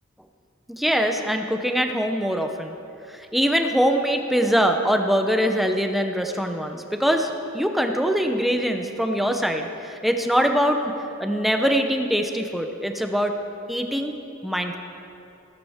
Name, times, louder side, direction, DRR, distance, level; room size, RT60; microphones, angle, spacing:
voice 1, 0.7-2.8 3.1-10.9 11.2-13.3 13.7-14.1 14.4-14.8, equal, ahead, 4 dB, 0.7 m, -23 dB
18.0 x 13.5 x 3.6 m, 2.8 s
head